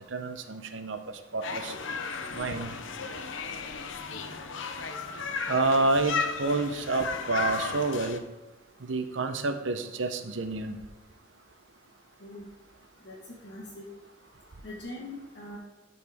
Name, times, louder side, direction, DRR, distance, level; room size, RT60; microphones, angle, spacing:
voice 1, 0.1-1.0 1.3-1.7 2.3-2.7 5.5-8.2 8.8-10.8, right 3 dB, 75° right, 7 dB, 0.7 m, -28 dB
sound 1, 1.4-8.2, left 5 dB, 80° left, 0.6 m, -34 dB
voice 2, 13.4-13.8 14.6-15.6, left 1 dB, 60° left, -6 dB, 1.4 m, -41 dB
12.0 x 4.3 x 3.6 m, 1.1 s
head